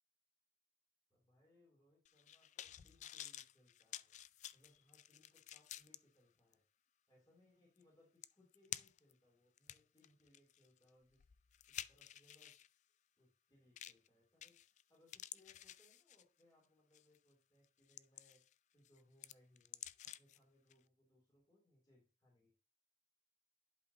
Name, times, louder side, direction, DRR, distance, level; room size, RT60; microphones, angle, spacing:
voice 1, 1.1-4.1 4.5-6.6 7.1-11.3 11.9-12.5 13.2-22.6, left 1 dB, 25° left, -4 dB, 3.3 m, -72 dB
sound 1, 2.1-6.0 6.5-6.6 7.8-7.9 8.2-9.1 9.6-12.7 13.8-14.1 14.4-14.8 15.1-16.4 16.9-17.2 17.6-18.5 18.9-20.4 20.7-20.8, left 12 dB, 45° left, 0.3 m, -51 dB
11.0 x 5.1 x 2.8 m, 0.32 s
head